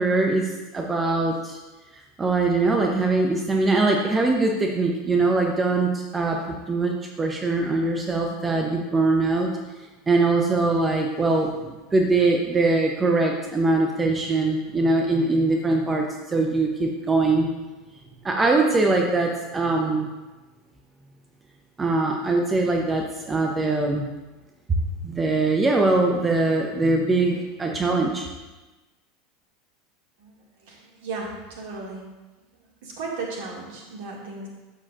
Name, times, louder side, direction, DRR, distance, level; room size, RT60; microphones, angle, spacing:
voice 1, 0.0-1.6 2.2-6.4 6.7-9.5 10.1-17.5 18.2-20.1 21.8-24.0 25.0-28.3, right 3 dB, 20° right, 1 dB, 0.9 m, -22 dB
voice 2, 30.2-32.0 32.5-34.5, right 3 dB, 55° right, -2 dB, 2.2 m, -36 dB
12.5 x 7.4 x 2.6 m, 1.2 s
figure-of-eight pair, 80°, 0 cm